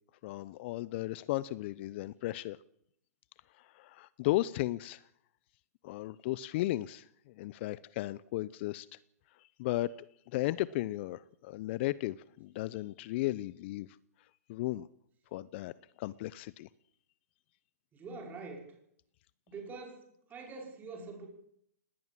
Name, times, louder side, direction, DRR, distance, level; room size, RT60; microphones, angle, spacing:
voice 1, 0.2-2.6 3.6-5.0 5.8-7.0 7.4-8.9 9.6-9.9 10.3-13.9 14.5-14.9 15.3-15.7 16.0-16.7, left 17 dB, 45° left, 0.7 m, -35 dB
voice 2, 17.9-18.7 19.5-21.3, right 3 dB, 20° right, 5.5 m, -45 dB
19.0 x 18.5 x 7.6 m
hypercardioid pair, 125°, 9 cm